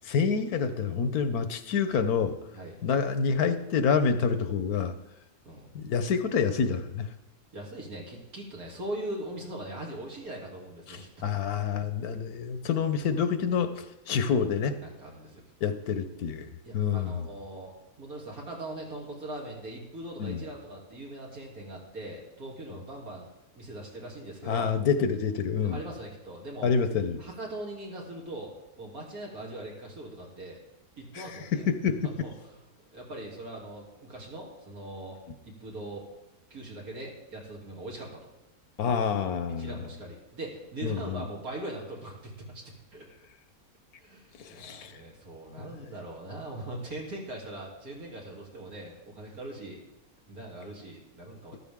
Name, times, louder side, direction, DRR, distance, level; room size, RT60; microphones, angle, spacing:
voice 1, 0.0-2.4 2.8-4.9 5.7-7.1 10.9-14.8 15.6-16.5 16.7-17.3 20.2-20.4 24.5-25.8 26.6-27.2 31.2-32.1 38.8-39.8 40.8-41.2 44.4-44.9, left 6 dB, 85° left, 10 dB, 1.4 m, -27 dB
voice 2, 7.5-11.1 14.8-15.4 16.6-23.3 23.5-24.7 25.6-26.7 27.2-30.6 31.0-31.6 32.0-32.3 32.9-36.1 36.5-38.3 39.6-42.6 42.9-43.0 44.0-49.8 50.3-51.6, right 1 dB, 75° right, -2 dB, 3.4 m, -41 dB
14.0 x 12.5 x 3.7 m, 0.98 s
omnidirectional pair, 1.6 m